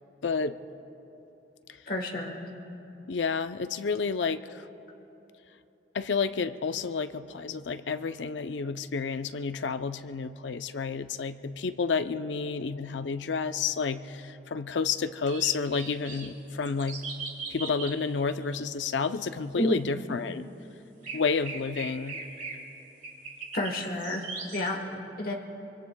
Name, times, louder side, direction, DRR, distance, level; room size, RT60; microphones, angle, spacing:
voice 1, 0.2-0.6 3.1-4.7 5.9-17.0 17.5-20.5 21.1-22.2, left 5 dB, 90° left, 10 dB, 0.5 m, -30 dB
voice 2, 1.9-2.5 19.5-19.8 23.5-24.2 24.5-25.3, left 1 dB, 50° left, 2 dB, 1.2 m, -30 dB
sound 1, 15.3-16.3 16.6-18.0 18.3-18.6 19.1-19.2 21.0-22.6 23.0-24.7, right 4 dB, 45° right, 2.0 m, -40 dB
25.5 x 24.5 x 2.2 m, 3.0 s
head